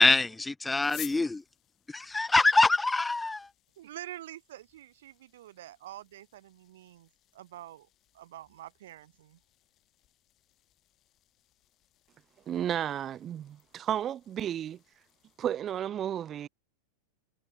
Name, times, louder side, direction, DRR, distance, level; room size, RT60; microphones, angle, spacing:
voice 1, 0.0-1.4 1.9-3.5, left 3 dB, 10° left, 0.3 m, -24 dB
sound 1, 0.8-15.5, left 13 dB, 35° left, 4.5 m, -54 dB
voice 2, 3.8-7.9 8.1-9.4, right 13 dB, 55° right, 5.8 m, -47 dB
voice 3, 12.5-14.8 15.4-16.5, right 10 dB, 25° right, 1.1 m, -33 dB
figure-of-eight pair, 90°, 0 cm